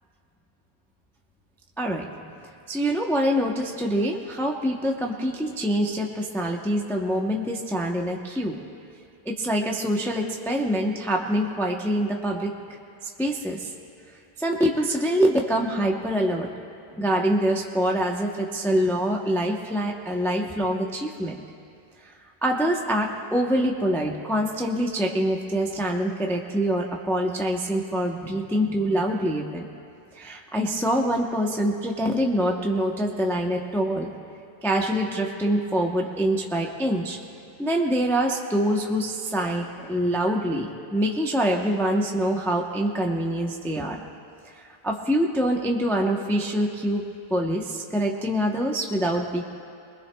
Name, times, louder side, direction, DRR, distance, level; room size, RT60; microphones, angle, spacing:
voice 1, 2.7-8.6 9.3-12.5 13.2-13.7 14.4-16.5 17.0-21.4 22.4-29.7 30.1-34.1 34.6-37.2 37.6-44.0 44.8-47.0 47.3-49.4, equal, 5° left, 0 dB, 0.3 m, -25 dB
23.0 x 21.0 x 2.3 m, 2.5 s
omnidirectional pair, 1.8 m